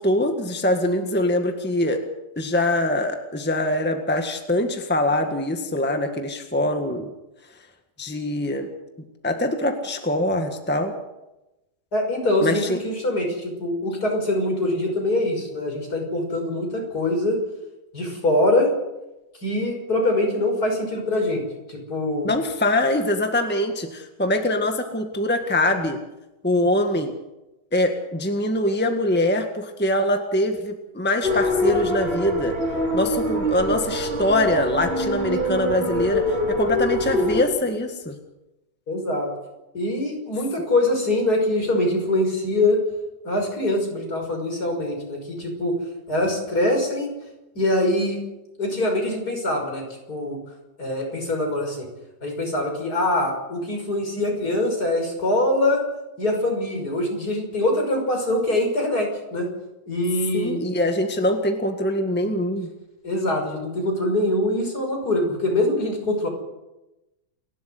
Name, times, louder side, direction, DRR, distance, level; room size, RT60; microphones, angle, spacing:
voice 1, 0.0-2.0 2.4-7.1 8.0-8.7 9.2-10.9 12.4-12.8 22.2-26.0 26.4-27.1 27.7-32.5 32.9-38.1 60.3-62.7, left 1 dB, 5° left, 5 dB, 1.6 m, -23 dB
voice 2, 11.9-17.4 17.9-18.7 19.4-21.4 21.7-22.3 38.9-39.3 39.7-42.8 43.2-45.7 46.1-47.1 47.5-48.2 48.6-50.4 50.8-51.9 52.2-55.8 56.2-59.5 59.9-60.7 63.0-66.3, left 1 dB, 60° left, 2 dB, 6.6 m, -23 dB
sound 1, 31.2-37.4, left 1 dB, 35° right, 3.4 m, -24 dB
29.0 x 12.5 x 7.9 m, 0.98 s
omnidirectional pair, 1.9 m